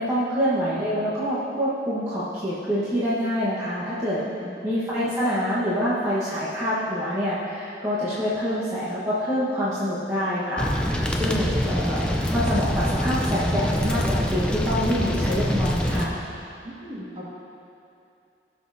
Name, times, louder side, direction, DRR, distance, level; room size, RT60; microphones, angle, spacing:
voice 1, 0.0-4.2 4.6-16.2, equal, 20° right, -12 dB, 1.3 m, -26 dB
voice 2, 4.2-4.5 16.6-17.3, right 1 dB, 35° right, -7 dB, 2.0 m, -38 dB
sound 1, 10.6-16.1, equal, 5° left, 0.5 m, -25 dB
17.0 x 6.3 x 2.8 m, 2.6 s
head